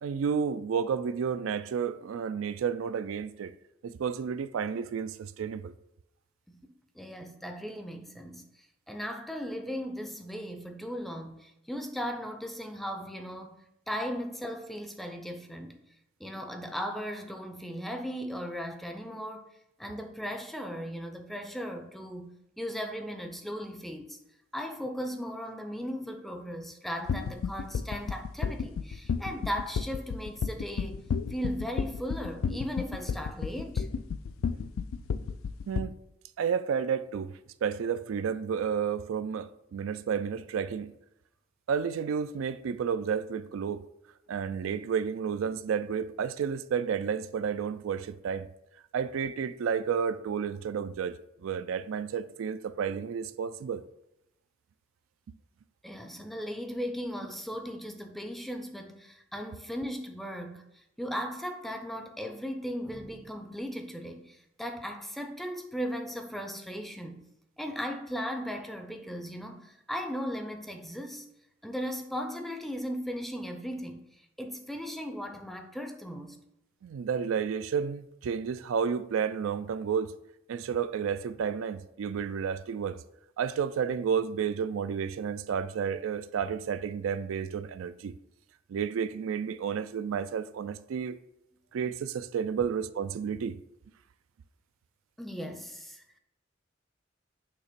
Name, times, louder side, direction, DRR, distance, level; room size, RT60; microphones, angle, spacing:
voice 1, 0.0-3.5 3.8-5.7 35.7-35.9 36.4-40.9 41.7-43.9 44.3-48.5 48.9-53.8 55.3-55.4 76.8-80.1 80.5-83.0 83.4-88.1 88.7-91.2 91.7-93.6, right 7 dB, 85° right, 0.3 m, -31 dB
voice 2, 6.5-15.8 16.2-19.5 19.8-24.2 24.5-31.0 31.3-33.9 55.8-67.2 67.6-71.3 71.6-74.0 74.4-76.4 95.2-96.2, equal, ahead, 0.5 m, -37 dB
sound 1, 27.1-35.8, left 6 dB, 90° left, 0.3 m, -31 dB
6.6 x 2.9 x 5.1 m
head